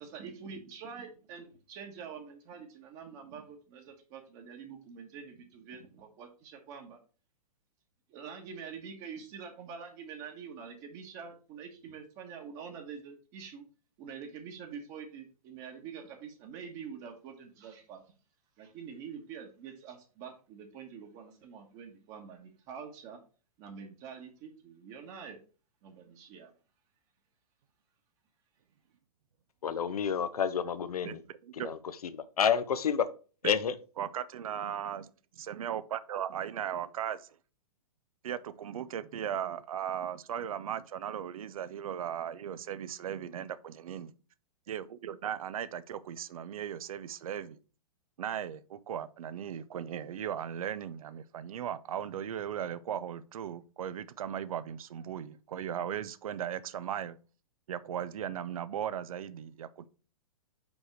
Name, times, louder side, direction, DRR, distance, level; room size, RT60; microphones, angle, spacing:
voice 1, 0.0-7.0 8.1-13.6 14.0-18.0 18.6-23.2 23.6-25.4 25.8-26.5, right 6 dB, 40° right, 1.4 m, -46 dB
voice 2, 29.6-31.2 31.5-33.1 33.4-33.7, left 7 dB, 75° left, 0.8 m, -29 dB
voice 3, 31.0-31.7 33.4-33.5 34.0-35.1 35.4-37.3 38.2-44.1 44.7-47.6 48.2-57.2 57.7-59.9, right 9 dB, 65° right, 0.6 m, -37 dB
5.3 x 4.9 x 4.6 m
hypercardioid pair, 115°, 19 cm